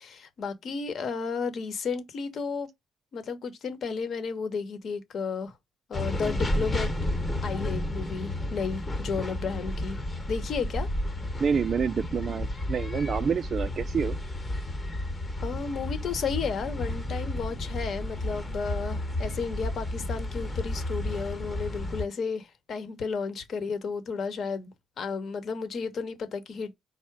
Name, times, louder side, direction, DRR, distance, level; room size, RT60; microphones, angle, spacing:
voice 1, 0.0-2.7 3.1-5.5 5.9-6.9 7.4-10.0 10.3-10.9 15.4-26.8, left 5 dB, 60° left, 1.0 m, -33 dB
sound 1, 5.9-22.0, left 1 dB, 25° left, 1.0 m, -32 dB
voice 2, 11.4-14.2, right 6 dB, 45° right, 0.3 m, -28 dB
4.7 x 2.1 x 4.5 m
cardioid pair, 90°, 0 cm